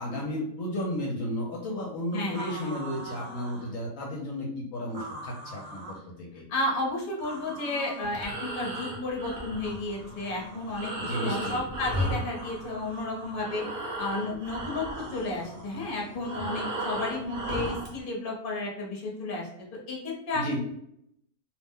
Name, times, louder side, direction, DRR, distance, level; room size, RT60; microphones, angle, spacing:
voice 1, 0.0-6.4 11.0-11.6 20.3-20.6, equal, 70° left, -1 dB, 0.9 m, -33 dB
voice 2, 2.1-2.7 6.5-10.9 11.2-13.6 14.0-19.5 19.9-20.6, left 2 dB, 45° left, -2 dB, 0.8 m, -32 dB
sound 1, 2.3-3.7 4.9-6.1 7.2-8.2 9.6-11.0 12.3-13.5 14.9-16.2, right 2 dB, 75° right, 1.2 m, -43 dB
Breathing, 8.0-13.0 13.3-18.0, right 1 dB, 50° right, 0.8 m, -35 dB
2.5 x 2.1 x 3.5 m, 0.73 s
omnidirectional pair, 1.5 m